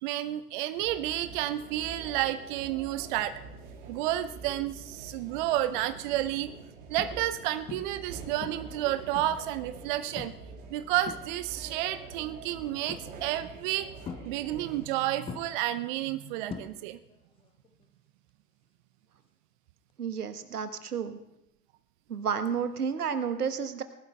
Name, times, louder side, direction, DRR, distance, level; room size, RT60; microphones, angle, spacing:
voice 1, 0.0-3.4 3.9-6.5 6.9-10.3 10.7-13.9 14.2-17.0, right 13 dB, 35° right, 13 dB, 0.5 m, -31 dB
sound 1, 0.7-14.9, right 4 dB, 50° right, 3.0 m, -46 dB
sound 2, 5.4-5.7 6.3-6.4 7.0-7.4 7.7-8.1 8.4-9.6 10.2-10.5 10.8-11.7 12.9-13.4 14.1-14.9 15.3-17.2 17.4-17.8 19.9-20.0, left 6 dB, 10° left, 0.6 m, -43 dB
voice 2, 20.0-21.2 22.1-23.8, right 7 dB, 75° right, 10 dB, 1.2 m, -31 dB
19.0 x 12.0 x 3.3 m, 0.85 s
figure-of-eight pair, 90°, 46 cm